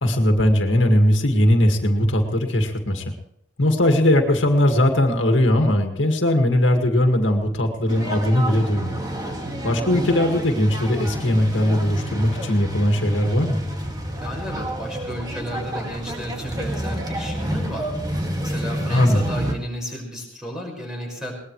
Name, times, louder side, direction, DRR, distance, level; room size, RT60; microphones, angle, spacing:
voice 1, 0.0-3.1 3.6-9.0 9.6-13.6 18.9-19.3, left 1 dB, 75° left, 4 dB, 2.1 m, -19 dB
sound 1, 7.9-19.5, right 1 dB, 20° right, 2.2 m, -29 dB
voice 2, 14.2-17.9 18.4-21.3, equal, 5° right, 0 dB, 5.6 m, -33 dB
21.5 x 20.0 x 3.3 m, 0.74 s
head